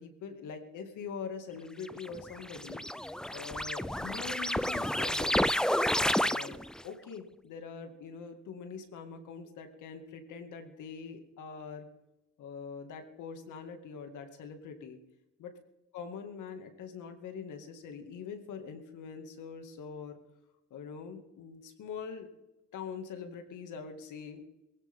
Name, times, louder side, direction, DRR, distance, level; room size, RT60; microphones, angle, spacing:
voice 1, 0.0-5.5 6.2-6.6 6.8-11.9 12.4-15.0 15.4-15.5 15.9-20.2 20.7-22.3 22.7-24.4, left 6 dB, 80° left, 6 dB, 2.4 m, -43 dB
sound 1, 1.9-6.8, left 1 dB, ahead, 0.5 m, -30 dB
20.0 x 16.5 x 3.8 m, 0.96 s
cardioid pair, 90°, 30 cm